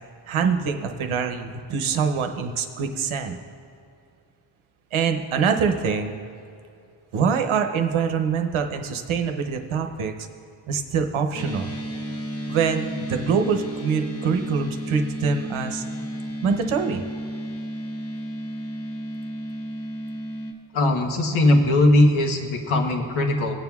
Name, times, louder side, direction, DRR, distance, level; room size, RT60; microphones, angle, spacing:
voice 1, 0.3-3.4 4.9-6.2 7.1-10.1 10.7-11.8 12.5-15.8 16.4-17.0, right 6 dB, 75° right, 6 dB, 0.8 m, -24 dB
sound 1, 11.3-20.5, equal, 30° left, 0.8 m, -32 dB
voice 2, 20.7-23.5, left 1 dB, 75° left, 2 dB, 1.2 m, -19 dB
17.0 x 9.1 x 2.3 m, 2.6 s
wide cardioid pair, 160°, 48 cm